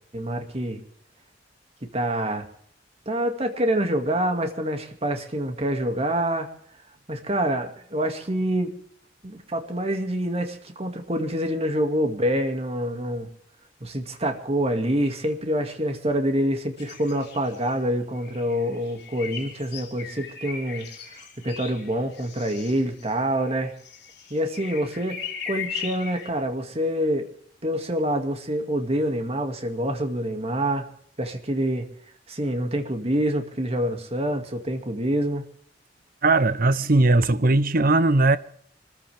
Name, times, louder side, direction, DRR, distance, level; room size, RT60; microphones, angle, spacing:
voice 1, 0.1-0.8 1.9-2.5 3.1-6.5 7.1-8.7 9.2-13.3 13.8-20.9 21.4-23.7 24.3-27.3 27.6-30.9 31.2-31.9 32.3-35.4, right 1 dB, 35° right, 2.3 m, -26 dB
sound 1, 16.8-17.9 18.2-26.3, left 7 dB, 65° left, 3.9 m, -38 dB
voice 2, 36.2-38.4, right 2 dB, 55° right, 0.9 m, -19 dB
25.0 x 14.5 x 3.5 m
head